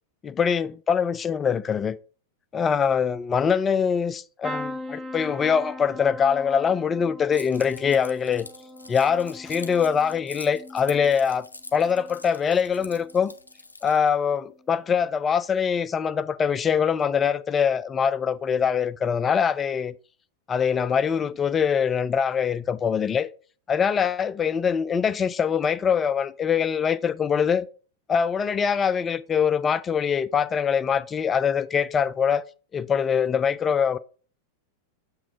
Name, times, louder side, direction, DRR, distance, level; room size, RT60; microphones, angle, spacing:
voice 1, 0.2-2.0 2.5-8.5 8.9-11.5 11.7-13.3 13.8-19.9 20.5-23.3 23.7-27.7 28.1-32.4 32.7-34.0, left 7 dB, 20° left, 0.3 m, -23 dB
sound 1, 4.4-12.3 12.7-13.3 14.5-14.7 15.0-15.1, left 1 dB, 5° right, 0.7 m, -40 dB
Keys jangling, 7.3-14.1, left 2 dB, 80° left, 0.4 m, -44 dB
7.4 x 3.0 x 4.7 m
figure-of-eight pair, 90°, 0 cm